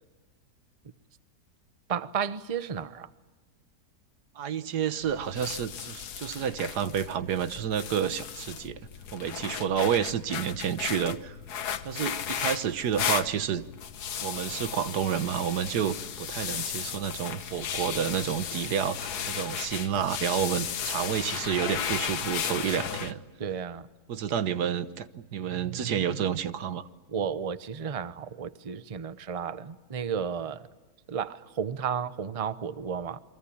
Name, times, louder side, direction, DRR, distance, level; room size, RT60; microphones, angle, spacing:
voice 1, 1.9-3.1 23.4-23.9 27.1-30.6 31.1-33.2, right 7 dB, 30° right, 0.8 m, -33 dB
voice 2, 4.4-8.8 9.1-11.3 11.8-13.6 14.2-23.2 24.1-26.9, right 8 dB, 90° right, 1.7 m, -30 dB
sound 1, 5.0-23.1, left 8 dB, 80° left, 1.6 m, -35 dB
28.5 x 23.5 x 8.6 m
omnidirectional pair, 1.7 m